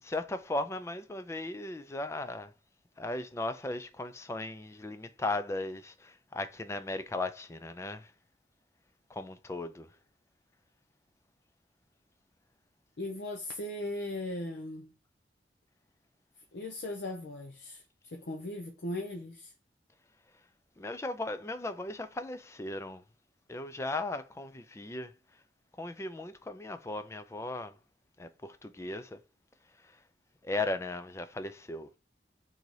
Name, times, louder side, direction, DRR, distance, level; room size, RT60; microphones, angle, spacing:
voice 1, 0.0-2.5 3.0-8.1 9.1-9.9 20.8-23.0 23.5-25.1 25.8-27.8 28.2-29.2 29.8-29.9 30.4-31.9, left 2 dB, 15° left, 0.3 m, -37 dB
voice 2, 13.0-14.9 16.5-19.5, left 1 dB, 70° left, 0.6 m, -38 dB
3.9 x 2.8 x 4.6 m
head